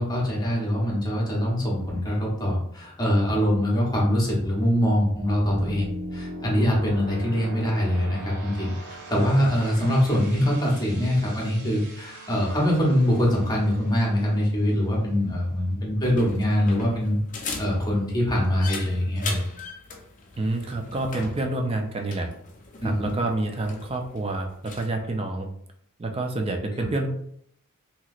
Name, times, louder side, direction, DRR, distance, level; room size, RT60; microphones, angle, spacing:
voice 1, 0.0-17.2 17.6-19.4 22.8-23.1 26.8-26.9, equal, 20° left, -3 dB, 0.9 m, -23 dB
sound 1, 4.5-16.2, right 1 dB, 75° right, 0.7 m, -41 dB
sound 2, 16.0-24.9, left 4 dB, 35° left, 0.5 m, -39 dB
voice 2, 20.4-22.3 22.8-25.5 26.0-27.1, right 2 dB, 25° right, 3 dB, 0.4 m, -28 dB
3.1 x 2.8 x 2.4 m, 0.67 s
head